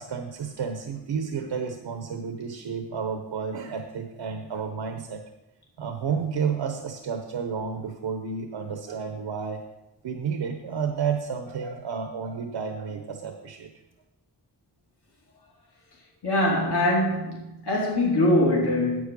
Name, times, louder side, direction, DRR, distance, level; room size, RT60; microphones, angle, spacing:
voice 1, 0.0-5.2 5.8-9.6 10.0-13.7, right 6 dB, 85° right, 6 dB, 1.0 m, -31 dB
voice 2, 16.2-19.0, left 1 dB, 70° left, -4 dB, 2.7 m, -23 dB
9.9 x 8.0 x 5.3 m, 0.97 s
cardioid pair, 55°, 41 cm